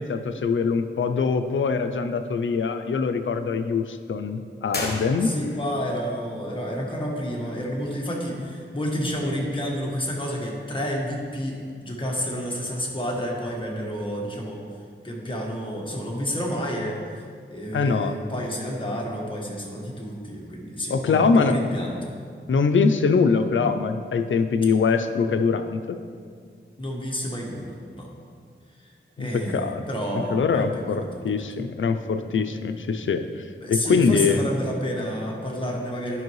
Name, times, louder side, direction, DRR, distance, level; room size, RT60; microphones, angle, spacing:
voice 1, 0.0-5.3 17.7-18.2 20.9-21.6 22.5-26.0 29.2-29.8 30.3-33.2 33.7-34.4, left 5 dB, 80° left, 8 dB, 0.5 m, -23 dB
sound 1, 4.7-5.7, left 2 dB, 55° left, 1.1 m, -33 dB
voice 2, 5.2-14.6 15.0-17.0 17.5-22.0 26.8-28.1 29.2-31.5 33.6-36.2, equal, 25° left, -2 dB, 1.3 m, -30 dB
10.5 x 5.4 x 3.1 m, 2.1 s
wide cardioid pair, 95°, 20 cm